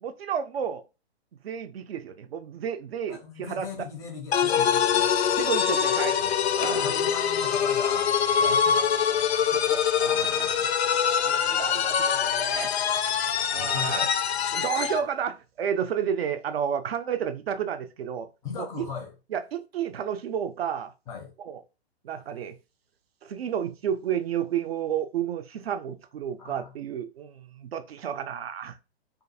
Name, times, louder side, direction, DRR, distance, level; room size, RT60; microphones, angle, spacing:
voice 1, 0.0-0.8 1.4-3.9 5.4-6.2 6.6-7.0 8.4-8.6 9.5-10.5 11.2-12.8 13.5-14.1 14.5-18.3 18.6-18.9 19.3-20.9 21.4-21.6 22.0-22.6 23.2-28.8, right 8 dB, 65° right, 0.5 m, -31 dB
voice 2, 3.1-5.1 6.2-8.1 8.4-8.9 10.0-10.7 13.5-14.1 18.4-19.1 21.1-21.3 26.4-26.7, left 6 dB, 10° left, 0.5 m, -38 dB
sound 1, 4.3-15.1, left 8 dB, 75° left, 0.5 m, -24 dB
2.4 x 2.4 x 2.6 m
figure-of-eight pair, 120°, 33 cm